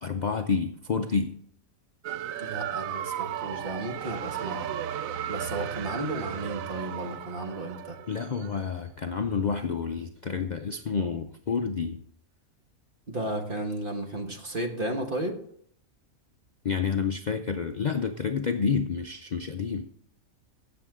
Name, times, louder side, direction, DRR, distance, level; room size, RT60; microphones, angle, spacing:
voice 1, 0.0-1.4 8.1-12.0 16.6-19.9, left 5 dB, 55° left, 6 dB, 0.5 m, -29 dB
sound 1, 2.0-8.6, right 10 dB, 75° right, 1.0 m, -35 dB
voice 2, 2.4-4.7 5.3-8.0 13.1-15.4, right 1 dB, 40° right, 3 dB, 1.5 m, -33 dB
16.0 x 6.9 x 3.6 m, 0.63 s
omnidirectional pair, 1.5 m